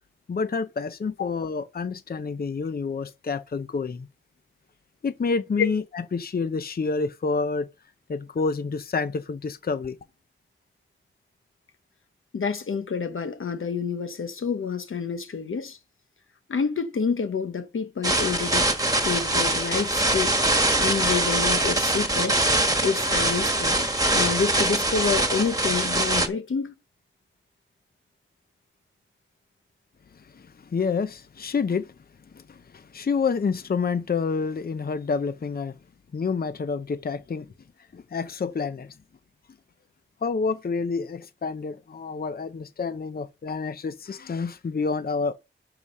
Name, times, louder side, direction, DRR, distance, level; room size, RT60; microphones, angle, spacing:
voice 1, 0.3-4.1 5.0-7.7 8.1-10.0 30.1-31.9 32.3-35.8 36.1-37.5 37.9-39.0 40.2-45.3, left 4 dB, 50° left, 0.6 m, -28 dB
voice 2, 12.3-15.8 16.5-18.7 19.0-20.3 20.8-22.4 22.8-23.9 24.1-26.7, left 5 dB, 90° left, 1.0 m, -28 dB
sound 1, 18.0-26.3, right 1 dB, 15° right, 1.4 m, -23 dB
11.0 x 4.9 x 5.4 m
wide cardioid pair, 70°, 20 cm